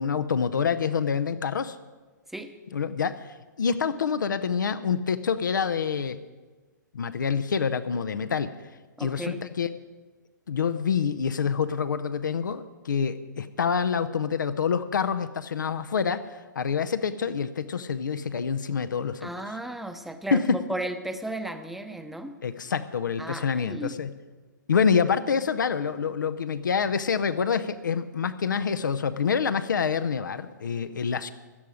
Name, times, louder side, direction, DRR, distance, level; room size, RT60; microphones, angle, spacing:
voice 1, 0.0-1.8 2.7-6.2 6.9-8.5 9.0-9.7 10.5-19.3 20.3-20.6 22.4-24.1 24.7-31.3, left 6 dB, 75° left, 10 dB, 0.7 m, -27 dB
voice 2, 9.0-9.4 19.2-22.4 23.2-24.0, right 1 dB, ahead, 8 dB, 0.8 m, -35 dB
17.0 x 11.5 x 4.9 m, 1.3 s
figure-of-eight pair, 120°, 10 cm